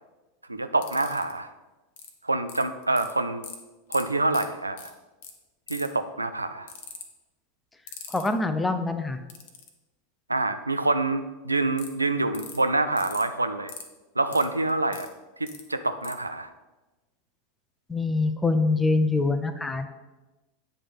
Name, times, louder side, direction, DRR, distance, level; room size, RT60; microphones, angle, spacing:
voice 1, 0.5-1.5 2.2-3.4 3.9-4.9 5.7-6.7 10.3-13.7 14.2-15.1 15.4-16.5, right 2 dB, 85° right, 9 dB, 0.4 m, -26 dB
sound 1, 0.8-1.3 2.0-2.1 2.5-3.1 3.4-3.6 3.9-4.0 4.3-4.4 4.8-4.9 5.2-5.3 5.7-6.0 6.7-7.0 7.9-8.3 9.3-9.7 11.8-11.9 12.3-12.6 13.0-13.2 13.7-13.8 14.3-15.1 15.5-15.6 16.0-16.1, left 7 dB, 55° left, 0.9 m, -40 dB
voice 2, 8.1-9.2 17.9-19.9, left 3 dB, 10° left, 9 dB, 0.5 m, -24 dB
8.5 x 3.4 x 5.5 m, 1.1 s
figure-of-eight pair, 85°, 0 cm